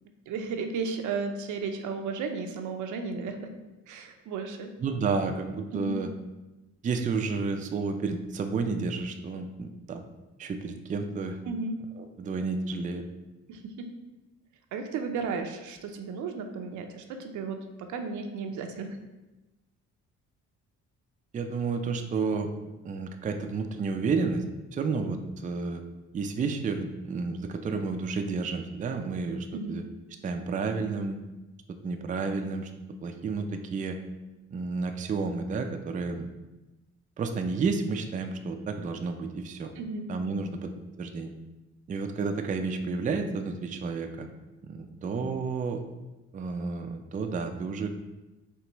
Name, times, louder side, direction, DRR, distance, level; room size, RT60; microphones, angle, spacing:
voice 1, 0.3-3.5 3.9-4.7 5.7-5.9 11.4-11.8 13.5-13.9 14.7-17.6 17.9-19.0 29.5-29.8 39.8-40.1, right 4 dB, 80° right, 5 dB, 0.6 m, -34 dB
voice 2, 4.8-6.1 6.8-10.0 10.4-11.4 12.0-13.0 21.3-22.5 22.8-24.4 24.7-25.8 26.1-29.8 30.2-31.2 31.8-32.7 33.0-34.0 34.5-36.3 37.2-39.7 40.1-40.7 41.0-41.3 41.9-44.3 44.6-45.8 46.3-47.9, right 4 dB, 25° right, 5 dB, 0.4 m, -31 dB
4.5 x 3.1 x 3.0 m, 1.1 s
cardioid pair, 90°, 30 cm